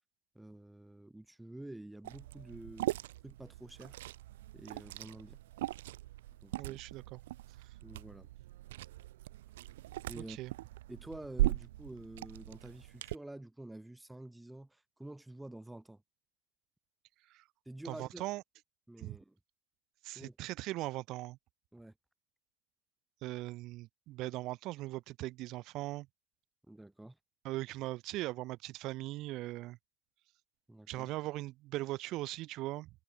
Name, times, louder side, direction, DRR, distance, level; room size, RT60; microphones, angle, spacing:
voice 1, 0.4-2.9 3.2-4.0 4.5-5.4 6.4-6.8 7.8-8.3 10.1-10.4 10.9-16.0 17.7-18.3 18.9-19.4 20.2-20.4 21.7-21.9 26.7-27.2 30.7-31.1, right 1 dB, 10° right, 1.9 m, -49 dB
Liquid, 2.0-13.1, right 16 dB, 85° right, 1.0 m, -39 dB
voice 2, 6.6-7.2 10.2-10.5 17.3-17.4 17.8-18.4 19.0-19.2 20.0-21.4 23.2-26.1 27.4-29.8 30.9-32.9, right 18 dB, 70° right, 1.9 m, -39 dB
hypercardioid pair, 65°, 0 cm